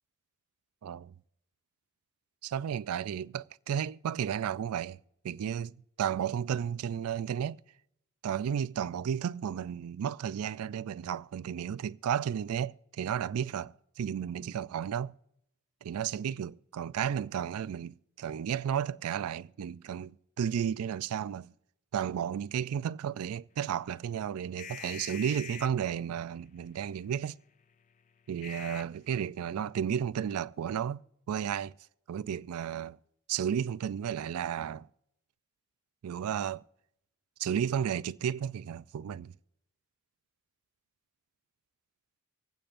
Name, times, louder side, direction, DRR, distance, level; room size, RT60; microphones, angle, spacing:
voice 1, 0.8-1.1 2.4-5.0 5.2-7.6 8.2-15.1 15.8-21.5 21.9-27.4 28.3-31.0 31.3-31.7 32.1-33.0 33.3-34.9 36.0-36.6 37.4-39.3, right 8 dB, 85° right, 0.3 m, -33 dB
sound 1, 23.5-29.3, left 8 dB, 35° left, 0.3 m, -48 dB
25.0 x 8.7 x 2.5 m
head